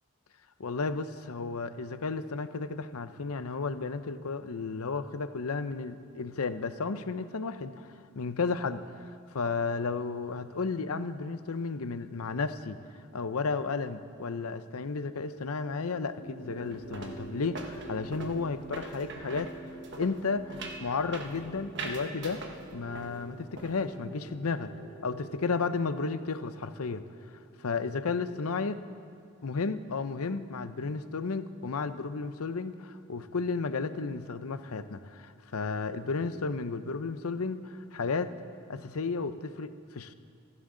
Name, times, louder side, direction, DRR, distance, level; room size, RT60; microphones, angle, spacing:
voice 1, 0.6-7.9 8.2-8.8 9.3-12.8 13.1-19.5 20.0-20.5 20.8-22.4 22.7-24.7 25.0-27.0 27.3-28.8 29.4-38.3 38.7-40.1, left 4 dB, 80° left, 11 dB, 0.7 m, -33 dB
sound 1, 16.1-28.1, right 2 dB, 25° right, 4.2 m, -47 dB
sound 2, 16.6-23.2 23.4-23.9, right 3 dB, 50° right, 1.3 m, -43 dB
27.0 x 11.0 x 3.9 m, 2.2 s
head